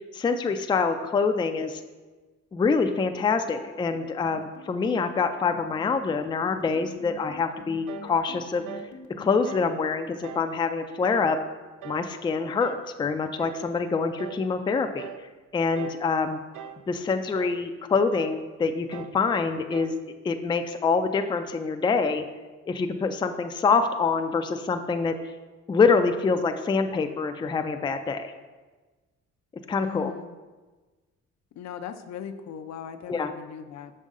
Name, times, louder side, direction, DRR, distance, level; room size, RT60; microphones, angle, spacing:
voice 1, 0.1-1.8 2.5-8.6 9.2-11.4 11.8-15.1 15.5-16.4 16.9-19.9 20.2-22.2 22.7-25.1 25.7-28.3 29.7-30.1 33.1-33.3, left 4 dB, 15° left, 7 dB, 0.3 m, -25 dB
sound 1, 3.5-9.6, left 5 dB, 85° left, 0.9 m, -47 dB
sound 2, 7.9-8.2 8.7-8.9 9.5-9.7 10.2-10.5 11.0-11.3 11.8-12.1 12.6-12.9 13.4-13.7 14.2-14.5 15.0-15.3 15.8-16.1 16.5-16.9 17.3-17.6 18.1-18.4 18.9-19.2 19.7-20.0, right 9 dB, 80° right, 0.5 m, -41 dB
voice 2, 29.8-30.4 31.6-33.9, left 8 dB, 65° left, 8 dB, 0.5 m, -38 dB
6.2 x 5.4 x 3.7 m, 1.3 s
cardioid pair, 90°, 30 cm